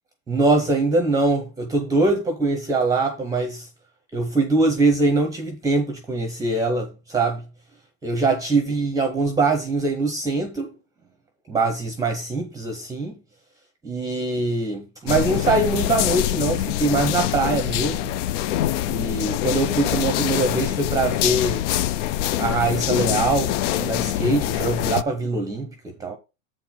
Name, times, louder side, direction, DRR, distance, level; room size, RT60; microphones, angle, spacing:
voice 1, 0.3-3.7 4.1-7.4 8.0-10.7 11.5-13.2 13.8-18.1 18.9-21.7 22.4-26.2, right 3 dB, 10° right, 0.7 m, -23 dB
sound 1, 15.1-25.0, left 13 dB, 60° left, 0.6 m, -24 dB
7.8 x 4.5 x 5.5 m
supercardioid pair, 145°, 42 cm